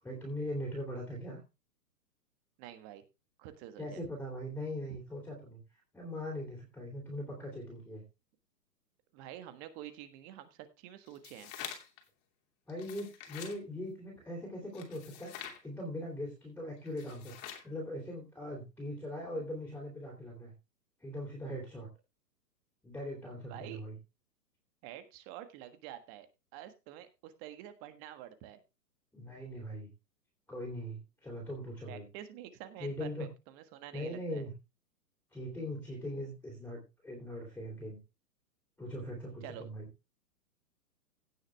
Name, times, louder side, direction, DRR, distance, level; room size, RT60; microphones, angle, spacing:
voice 1, 0.0-1.4 3.8-5.6 5.9-8.0 12.7-17.3 17.6-20.5 21.0-21.9 22.8-24.0 29.1-29.9 30.5-32.0 32.8-33.3 33.9-34.5 35.3-38.0 38.8-39.9, equal, 5° left, -1 dB, 3.2 m, -40 dB
voice 2, 2.6-3.0 3.4-4.0 9.1-11.5 23.5-23.8 24.8-26.3 26.5-28.6 31.9-34.5 39.4-39.6, right 12 dB, 30° right, 10 dB, 1.5 m, -48 dB
sound 1, 11.1-12.0 12.7-13.6 14.7-15.6 16.9-17.7, left 9 dB, 35° left, 2.7 m, -46 dB
16.5 x 6.4 x 3.4 m, 0.27 s
hypercardioid pair, 135°, 49 cm